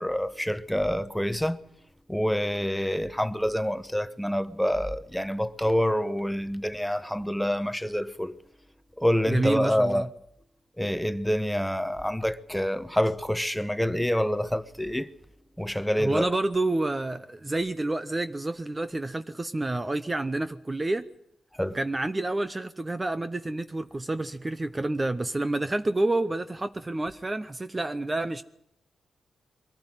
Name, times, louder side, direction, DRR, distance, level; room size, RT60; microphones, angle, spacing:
voice 1, 0.0-1.6 2.1-8.3 9.0-10.1 10.8-15.1 15.6-16.3 21.6-21.8, equal, 5° left, 0.9 m, -27 dB
voice 2, 9.3-10.1 16.0-21.1 21.7-28.4, right 2 dB, 20° right, 0.7 m, -29 dB
22.5 x 14.5 x 9.0 m
cardioid pair, 95°, 0 cm